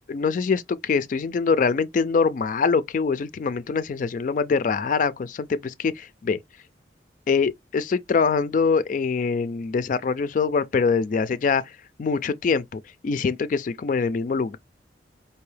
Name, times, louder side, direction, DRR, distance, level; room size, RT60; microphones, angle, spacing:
voice 1, 0.1-6.4 7.3-14.6, left 5 dB, 45° left, 0.3 m, -24 dB
4.5 x 2.7 x 3.2 m
head